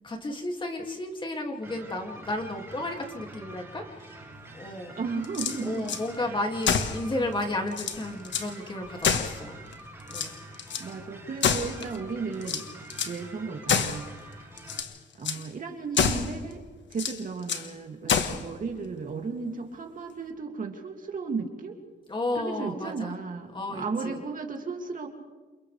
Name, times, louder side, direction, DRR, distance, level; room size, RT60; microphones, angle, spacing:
voice 1, 0.0-5.0 5.6-9.6 10.1-10.3 22.1-23.2 23.5-24.2, left 1 dB, 25° left, 2 dB, 2.5 m, -33 dB
sound 1, 1.6-14.8, right 2 dB, 10° right, 6.7 m, -46 dB
voice 2, 5.0-5.9 10.8-14.1 15.2-16.6 16.9-21.8 22.3-25.1, right 4 dB, 45° right, 2 dB, 2.6 m, -35 dB
sound 2, 5.2-6.0 6.6-7.0 7.4-7.5 7.7-8.5 9.0-9.7 10.1-10.9 11.4-12.0 12.4-13.2 13.7-14.1 14.6-14.9 15.2-15.4 15.9-16.4 16.9-17.7 18.1-18.5, left 7 dB, 80° left, 1.6 m, -27 dB
29.0 x 28.5 x 3.4 m, 1.2 s
wide cardioid pair, 140°, 19 cm